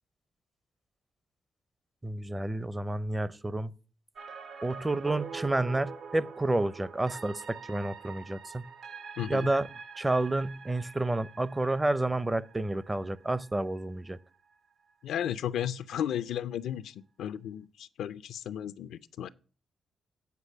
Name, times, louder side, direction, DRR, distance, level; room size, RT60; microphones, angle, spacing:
voice 1, 2.0-3.7 4.6-8.6 9.3-9.7 10.0-14.2, right 2 dB, 20° right, 0.5 m, -30 dB
sound 1, 4.2-14.2 14.5-14.6, right 5 dB, 70° right, 1.0 m, -45 dB
voice 2, 9.2-9.5 15.0-19.3, left 10 dB, 85° left, 0.4 m, -34 dB
8.3 x 4.9 x 7.3 m
cardioid pair, 65°, 0 cm